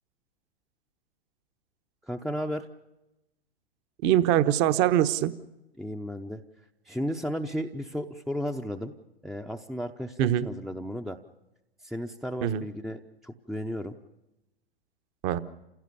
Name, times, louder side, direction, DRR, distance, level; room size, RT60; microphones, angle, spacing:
voice 1, 2.0-2.7 5.8-6.4 6.9-8.9 9.2-11.2 11.8-14.0, equal, ahead, 4 dB, 0.7 m, -34 dB
voice 2, 4.0-5.3 10.2-10.5 12.4-12.6 15.2-15.4, right 12 dB, 40° right, 13 dB, 1.1 m, -23 dB
28.5 x 16.5 x 6.9 m, 0.97 s
figure-of-eight pair, 105°, 31 cm